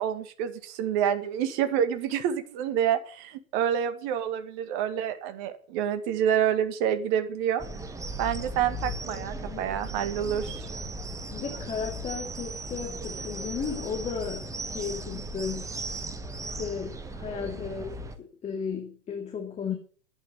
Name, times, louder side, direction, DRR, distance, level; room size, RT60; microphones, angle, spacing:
voice 1, 0.0-7.6 8.2-10.7, right 9 dB, 40° right, 10 dB, 2.0 m, -28 dB
sound 1, 7.6-18.2, right 2 dB, 10° right, 1.2 m, -37 dB
voice 2, 11.3-15.7 16.4-19.7, left 6 dB, 15° left, 2 dB, 2.3 m, -35 dB
11.0 x 9.1 x 9.1 m, 0.44 s
figure-of-eight pair, 105°, 39 cm